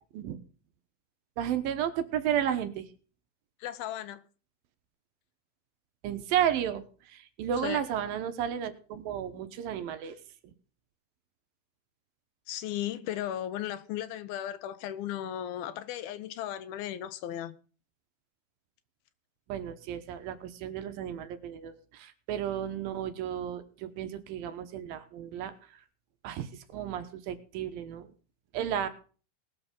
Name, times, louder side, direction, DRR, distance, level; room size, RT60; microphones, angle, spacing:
voice 1, 1.4-2.9 6.0-10.2 10.4-10.5 19.5-25.5 26.2-28.1 28.5-28.9, right 9 dB, 75° right, 2.8 m, -33 dB
voice 2, 3.6-4.2 7.6-7.8 12.5-17.5, left 11 dB, 85° left, 2.8 m, -36 dB
20.0 x 6.9 x 5.3 m
omnidirectional pair, 4.3 m